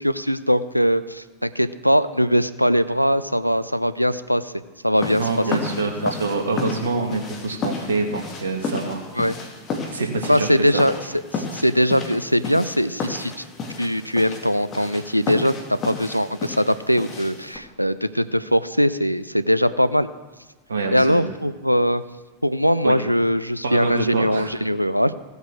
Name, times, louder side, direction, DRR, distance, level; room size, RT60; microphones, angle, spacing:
voice 1, 0.0-4.5 4.8-5.2 6.0-6.1 9.2-9.4 10.3-10.9 11.3-13.4 13.8-20.1 20.9-22.0 22.4-25.2, equal, 90° left, 14 dB, 0.5 m, -21 dB
sound 1, 5.0-17.6, left 3 dB, 30° left, 2.5 m, -32 dB
voice 2, 5.2-9.0 9.9-10.5 10.7-10.8 20.7-21.2 22.8-23.0 23.6-24.5, right 3 dB, 70° right, 3 dB, 2.1 m, -25 dB
16.0 x 8.0 x 6.3 m, 1.2 s
figure-of-eight pair, 90°, 0 cm